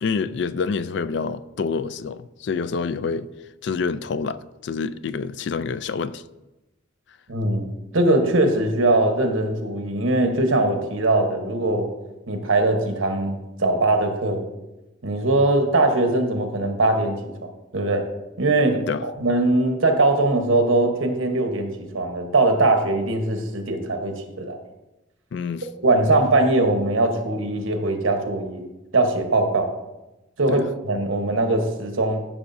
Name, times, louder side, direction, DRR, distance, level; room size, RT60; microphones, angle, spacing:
voice 1, 0.0-3.3 3.6-6.2 18.7-19.0 25.3-25.7 30.5-30.7, left 5 dB, 60° left, 0.3 m, -27 dB
voice 2, 7.3-11.9 12.3-14.4 15.0-18.1 18.4-24.6 25.8-28.7 28.9-29.7 30.4-32.3, right 2 dB, 80° right, 1.1 m, -21 dB
13.0 x 5.9 x 2.6 m
head